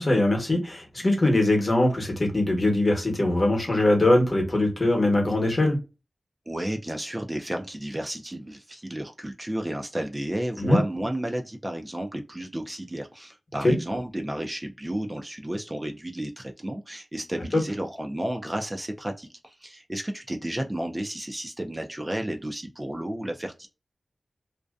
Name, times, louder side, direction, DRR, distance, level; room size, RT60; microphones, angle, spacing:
voice 1, 0.0-5.8 10.6-10.8 13.6-13.8 17.5-17.6, left 1 dB, 40° left, 0.9 m, -22 dB
voice 2, 6.5-23.7, right 1 dB, 20° right, 0.4 m, -32 dB
2.5 x 2.1 x 2.3 m
wide cardioid pair, 95°, 0 cm